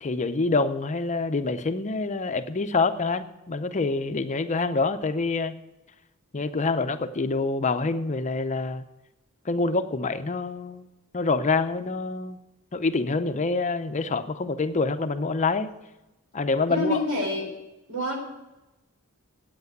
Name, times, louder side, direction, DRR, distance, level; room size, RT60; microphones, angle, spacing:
voice 1, 0.0-5.6 6.3-8.8 9.5-10.9 11.1-12.4 12.7-15.7 16.3-17.0, left 3 dB, 35° left, 9 dB, 0.6 m, -26 dB
voice 2, 16.7-17.5 17.9-18.2, left 1 dB, 80° right, 0 dB, 4.1 m, -27 dB
8.7 x 8.3 x 9.2 m, 0.96 s
head